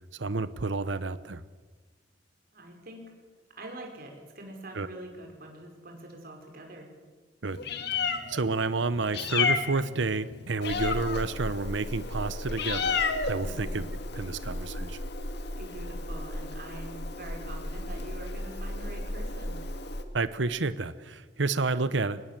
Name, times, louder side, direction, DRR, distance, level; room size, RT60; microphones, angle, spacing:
voice 1, 0.1-1.4 4.7-4.9 7.4-7.6 7.9-13.8 14.1-15.0 20.1-22.2, right 3 dB, 80° right, 14 dB, 1.0 m, -30 dB
voice 2, 2.5-3.1 3.5-6.9 13.4-13.9 15.6-19.6, right 1 dB, 55° right, 2 dB, 5.5 m, -44 dB
Meow, 7.5-20.0, left 4 dB, 65° left, 2.0 m, -33 dB
24.0 x 20.0 x 7.6 m, 1.4 s
head